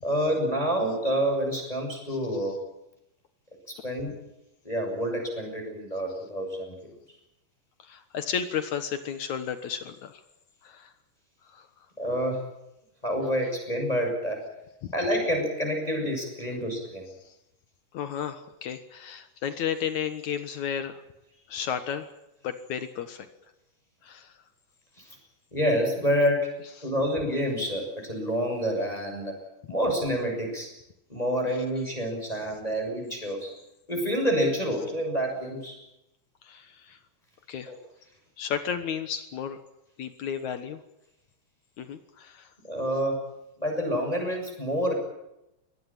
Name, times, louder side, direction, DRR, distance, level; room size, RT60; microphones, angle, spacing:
voice 1, 0.0-2.6 3.7-4.1 4.6-6.9 12.0-12.4 13.0-14.4 14.9-17.1 25.5-26.5 26.8-29.4 29.7-30.7 31.1-33.5 33.9-35.8 37.7-37.8 42.6-43.2 43.6-44.9, equal, 10° left, 1 dB, 6.9 m, -28 dB
voice 2, 7.8-10.2 10.6-10.9 11.5-11.7 14.8-14.9 17.3-17.4 17.9-21.0 21.5-22.1 22.4-23.3 24.0-24.3 26.8-26.9 36.4-37.0 37.5-37.7 38.4-39.6 40.0-40.8 41.8-42.5, left 8 dB, 65° left, 10 dB, 2.6 m, -33 dB
22.5 x 18.5 x 8.9 m, 0.85 s
omnidirectional pair, 3.7 m